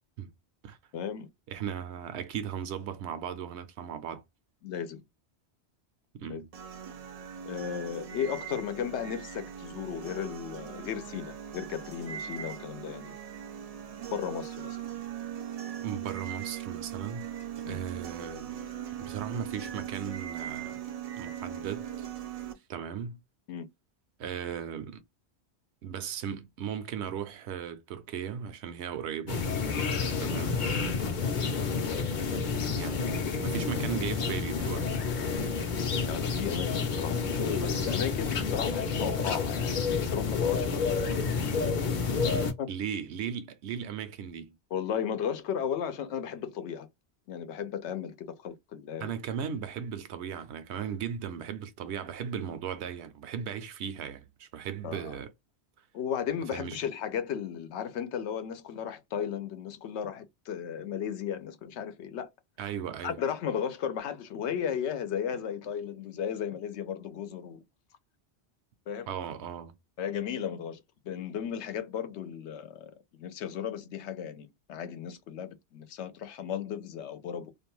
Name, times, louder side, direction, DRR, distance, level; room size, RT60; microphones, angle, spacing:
voice 1, 0.9-1.3 4.6-5.0 6.3-6.4 7.5-13.1 14.1-14.8 17.6-17.9 23.5-23.7 30.0-30.3 35.4-35.6 36.1-41.1 42.2-42.7 44.7-46.9 47.3-49.1 54.8-55.2 55.9-62.3 63.0-67.6 68.9-69.1 70.0-77.5, left 8 dB, 85° left, 0.9 m, -35 dB
voice 2, 1.5-4.2 6.1-6.5 15.8-17.3 17.7-18.6 19.0-20.8 21.2-22.1 22.7-23.2 24.2-25.0 25.8-29.5 30.2-30.6 32.7-35.0 42.2-44.5 49.0-55.3 56.5-56.8 62.6-63.2 69.1-69.7, right 8 dB, 80° right, 0.9 m, -37 dB
sound 1, 6.5-22.5, right 9 dB, 60° right, 0.4 m, -40 dB
sound 2, 29.3-42.5, left 5 dB, 55° left, 0.6 m, -29 dB
2.5 x 2.2 x 3.0 m
omnidirectional pair, 1.1 m